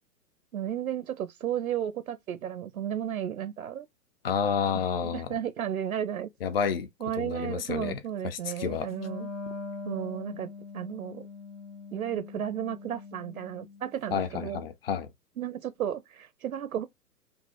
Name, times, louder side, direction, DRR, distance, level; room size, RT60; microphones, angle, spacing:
voice 1, 0.5-3.9 5.0-6.3 7.0-9.3 9.8-11.3 11.9-14.6 15.4-16.9, right 10 dB, 60° right, 0.6 m, -33 dB
voice 2, 4.2-5.3 6.4-6.9 7.2-8.9 14.1-15.1, left 7 dB, 35° left, 0.6 m, -30 dB
Wind instrument woodwind instrument, 8.9-13.9, left 4 dB, 55° left, 1.0 m, -42 dB
5.3 x 2.0 x 4.2 m
figure-of-eight pair, 120°, 49 cm